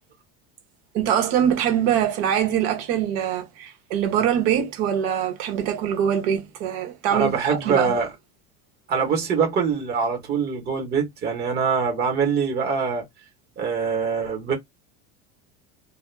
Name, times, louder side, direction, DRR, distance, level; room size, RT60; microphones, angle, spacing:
voice 1, 0.9-8.0, right 9 dB, 65° right, 0.9 m, -23 dB
voice 2, 7.1-8.1 8.9-13.0 13.6-14.5, right 6 dB, 30° right, 1.0 m, -24 dB
2.3 x 2.2 x 3.1 m
cardioid pair, 145°, 33 cm